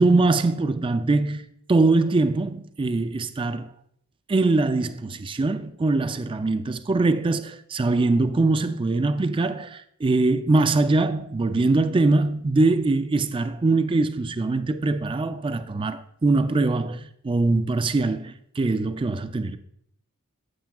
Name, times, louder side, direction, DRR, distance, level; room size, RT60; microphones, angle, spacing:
voice 1, 0.0-3.7 4.3-19.6, right 3 dB, 25° right, 0.4 m, -22 dB
9.2 x 8.6 x 2.3 m
head